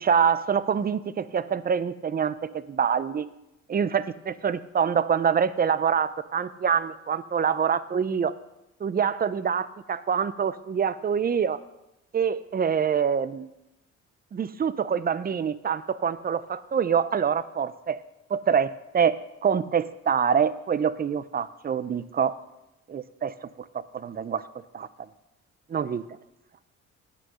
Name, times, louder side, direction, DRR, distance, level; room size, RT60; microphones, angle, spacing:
voice 1, 0.0-3.3 3.7-8.4 8.8-11.6 12.1-13.5 14.3-18.0 18.3-22.3 22.9-23.3 23.9-24.4 24.7-24.9 25.7-26.0, right 7 dB, 30° right, 16 dB, 0.5 m, -25 dB
9.3 x 6.3 x 6.2 m, 0.90 s
cardioid pair, 90°, 30 cm